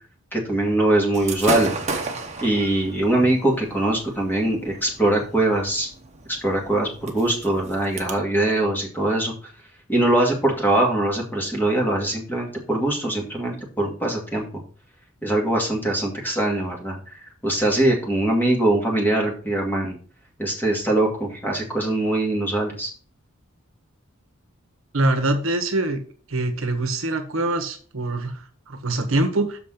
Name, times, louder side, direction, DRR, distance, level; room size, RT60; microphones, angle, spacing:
voice 1, 0.3-1.7 2.4-5.9 6.4-9.3 9.9-14.4 15.2-20.0 20.4-22.9, right 1 dB, 10° left, 0 dB, 2.3 m, -22 dB
Gunshot gunfire / Fireworks, 1.1-8.1, right 3 dB, 30° right, 1.2 m, -33 dB
voice 2, 24.9-26.0 26.3-29.6, right 2 dB, 70° right, 8 dB, 1.2 m, -24 dB
6.6 x 5.2 x 5.8 m, 0.41 s
head